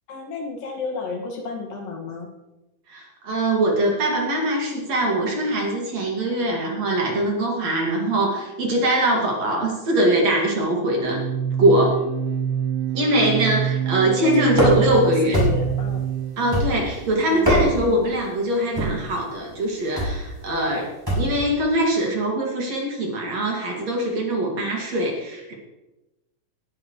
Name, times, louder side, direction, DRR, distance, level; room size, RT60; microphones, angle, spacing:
voice 1, 0.1-2.3 14.0-16.0 17.3-17.9, left 4 dB, 70° left, 0 dB, 3.6 m, -31 dB
voice 2, 2.9-11.2 11.6-12.0 12.9-15.4 16.4-20.9 21.2-25.5, right 1 dB, 50° right, -1 dB, 3.3 m, -22 dB
sound 1, 11.0-16.7, right 8 dB, 85° right, 2.9 m, -26 dB
sound 2, 14.5-15.0 15.3-15.8 16.5-17.0 17.3-18.0 18.8-19.1 20.0-20.2 21.1-21.4, right 1 dB, 5° right, 5.1 m, -22 dB
20.0 x 11.0 x 3.2 m, 1.0 s
omnidirectional pair, 4.0 m